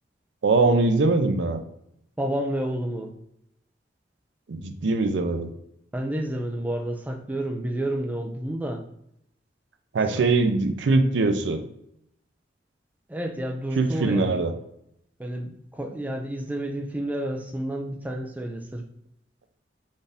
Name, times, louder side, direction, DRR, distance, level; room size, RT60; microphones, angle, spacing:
voice 1, 0.4-1.6 4.5-5.5 9.9-11.6 13.8-14.5, right 3 dB, 90° right, 7 dB, 0.5 m, -22 dB
voice 2, 2.2-3.1 5.9-8.8 10.1-10.2 13.1-14.4 15.2-18.8, right 1 dB, 10° right, 4 dB, 0.4 m, -30 dB
4.1 x 2.6 x 3.5 m, 0.77 s
head